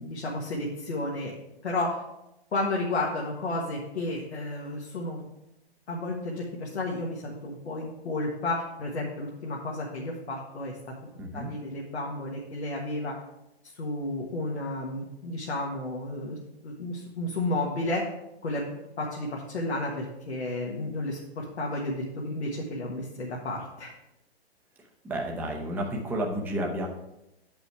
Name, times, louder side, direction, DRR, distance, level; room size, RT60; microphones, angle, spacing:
voice 1, 0.0-1.3 1.6-2.0 2.5-5.2 5.9-10.8 11.3-13.1 13.6-16.4 16.6-18.0 18.4-18.7 19.0-23.9, left 2 dB, 90° left, -3 dB, 1.5 m, -32 dB
voice 2, 11.2-11.5 25.0-26.9, right 1 dB, 5° right, -1 dB, 0.7 m, -31 dB
8.0 x 5.4 x 4.5 m, 0.89 s
hypercardioid pair, 135°, 32 cm